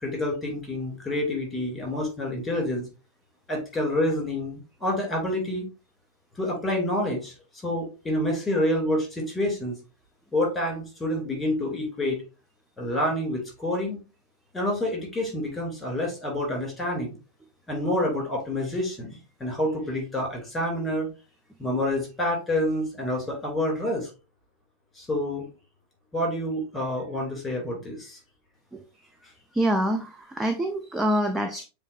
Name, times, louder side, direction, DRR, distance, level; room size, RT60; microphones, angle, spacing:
voice 1, 0.0-2.8 3.5-5.7 6.4-7.3 7.6-9.7 10.3-12.2 12.8-14.0 14.5-17.1 17.7-21.1 21.6-24.1 24.9-25.4 26.1-28.2, left 1 dB, 10° left, 0 dB, 2.6 m, -28 dB
voice 2, 29.5-31.7, right 1 dB, 5° right, 6 dB, 0.4 m, -26 dB
7.2 x 2.4 x 2.5 m, 0.31 s
figure-of-eight pair, 90°, 0 cm